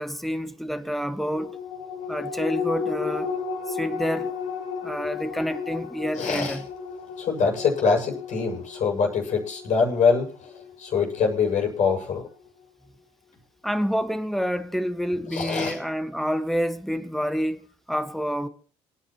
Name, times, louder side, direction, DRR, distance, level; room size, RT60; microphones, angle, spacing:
voice 1, 0.0-1.6 2.1-3.3 3.7-4.3 4.8-6.7 13.6-18.5, equal, ahead, 1.6 m, -28 dB
sound 1, 1.2-12.0 12.4-12.5, left 6 dB, 90° left, 2.2 m, -34 dB
voice 2, 6.2-6.6 7.2-10.3 10.8-12.2 15.3-15.8, left 5 dB, 60° left, 7.3 m, -24 dB
26.5 x 10.5 x 3.1 m
supercardioid pair, 70°, 14 cm